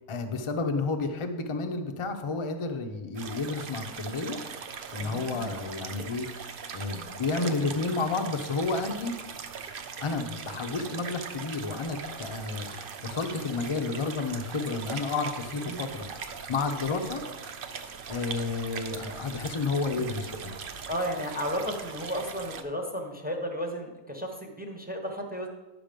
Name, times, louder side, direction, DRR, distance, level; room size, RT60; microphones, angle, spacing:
voice 1, 0.1-4.4 4.9-6.3 6.7-9.1 10.0-12.8 13.0-16.1 16.5-17.2 18.1-20.5, left 3 dB, 40° left, 6 dB, 0.4 m, -31 dB
sound 1, 3.1-22.6, right 6 dB, 75° right, 0.5 m, -40 dB
voice 2, 5.0-5.5 15.6-16.0 19.9-20.1 20.9-25.5, equal, 5° right, 3 dB, 0.7 m, -34 dB
10.5 x 6.0 x 5.2 m, 1.1 s
omnidirectional pair, 1.8 m